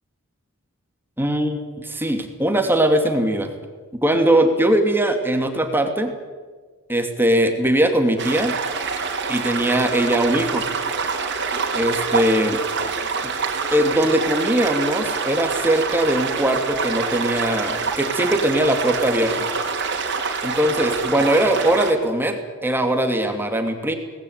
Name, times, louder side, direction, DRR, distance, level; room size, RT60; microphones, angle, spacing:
voice 1, 1.2-3.5 4.0-6.1 6.9-8.6 9.3-10.6 11.7-12.6 13.2-13.3 13.7-19.3 20.4-23.9, right 1 dB, 10° right, 5 dB, 2.7 m, -20 dB
sound 1, 8.2-21.9, right 5 dB, 50° right, 3.3 m, -26 dB
23.5 x 19.5 x 9.6 m, 1.5 s
head